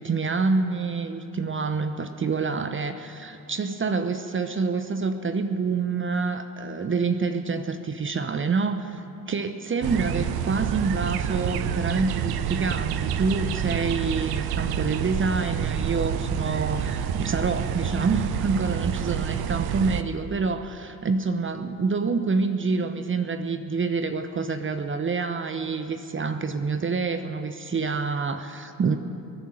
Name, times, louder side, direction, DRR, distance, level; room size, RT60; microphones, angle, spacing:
voice 1, 0.0-29.0, right 4 dB, 30° right, 9 dB, 0.9 m, -27 dB
sound 1, 9.8-20.0, right 9 dB, 55° right, 0.9 m, -28 dB
22.5 x 9.3 x 6.4 m, 2.6 s
hypercardioid pair, 55°, 43 cm